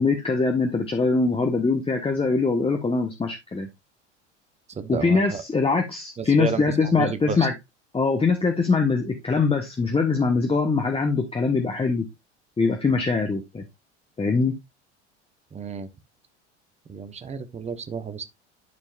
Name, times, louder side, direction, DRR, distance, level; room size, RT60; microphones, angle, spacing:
voice 1, 0.0-3.7 4.9-7.5 7.9-12.1 12.6-13.6 14.2-14.5, left 4 dB, 15° left, 1.3 m, -22 dB
voice 2, 4.7-5.4 6.2-7.5 15.5-15.9 16.9-18.2, right 6 dB, 20° right, 1.1 m, -31 dB
12.0 x 4.5 x 2.5 m
hypercardioid pair, 75°, 35 cm